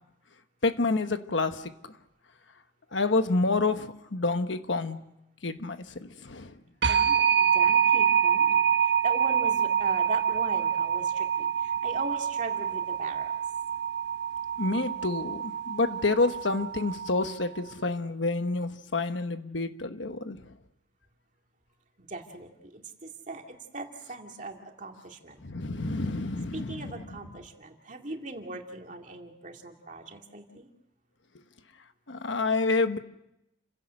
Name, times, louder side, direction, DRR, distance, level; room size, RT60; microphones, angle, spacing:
voice 1, 0.6-1.6 2.9-5.0 5.4-6.5 14.6-20.4 25.4-27.1 32.1-33.0, left 3 dB, 85° left, 9 dB, 1.2 m, -28 dB
sound 1, 6.8-17.4, right 8 dB, 70° right, 1.2 m, -26 dB
voice 2, 6.9-13.4 22.0-25.4 26.5-30.7, right 2 dB, 45° right, 2 dB, 2.5 m, -39 dB
29.5 x 16.5 x 6.5 m, 0.84 s
head